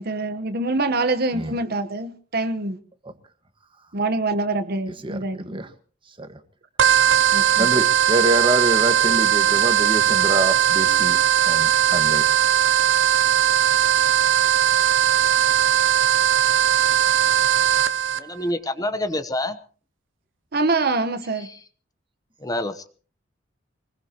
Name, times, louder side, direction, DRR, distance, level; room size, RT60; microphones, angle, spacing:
voice 1, 0.0-2.8 3.9-5.6 7.3-7.7 20.5-21.5, right 3 dB, 55° right, 10 dB, 1.2 m, -25 dB
voice 2, 5.0-5.7 6.2-6.4 7.6-11.2 11.4-12.3, right 1 dB, 25° right, 9 dB, 1.6 m, -26 dB
sound 1, 6.8-18.2, right 10 dB, 75° right, 0.8 m, -19 dB
voice 3, 18.2-19.6 22.4-22.9, left 1 dB, 20° left, 11 dB, 1.0 m, -27 dB
24.5 x 20.0 x 3.0 m, 0.41 s
head